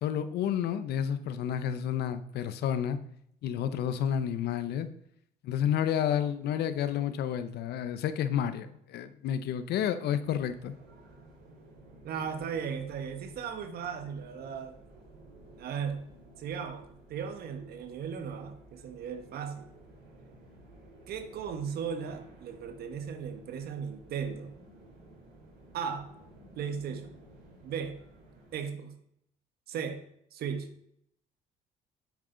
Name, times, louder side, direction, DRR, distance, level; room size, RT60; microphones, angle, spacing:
voice 1, 0.0-3.0 3.4-4.9 5.4-10.7, left 9 dB, 75° left, 12 dB, 0.9 m, -30 dB
sound 1, 10.2-28.6, right 1 dB, 90° right, 3.9 m, -54 dB
voice 2, 12.0-14.8 15.6-16.1 16.4-19.7 21.1-24.6 25.7-26.1 26.6-27.1 27.6-28.0 28.5-29.0 29.7-30.0 30.3-30.7, right 7 dB, 65° right, 8 dB, 1.5 m, -36 dB
9.7 x 8.4 x 4.0 m, 0.71 s
cardioid pair, 110°, 17 cm